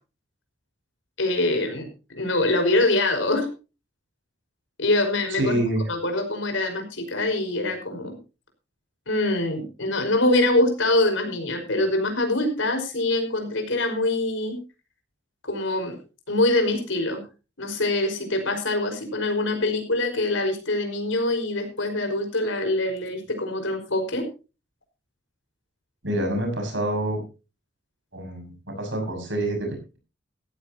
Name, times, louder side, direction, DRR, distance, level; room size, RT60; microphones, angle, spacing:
voice 1, 1.2-1.9 2.1-3.5 4.8-5.6 5.9-8.1 9.1-14.6 15.5-16.0 16.3-17.2 17.6-24.2, left 2 dB, 85° left, 5 dB, 5.3 m, -24 dB
voice 2, 5.4-5.8 26.0-27.2 28.1-30.0, right 1 dB, 75° right, 4 dB, 6.5 m, -27 dB
16.0 x 14.5 x 2.9 m, 0.31 s
head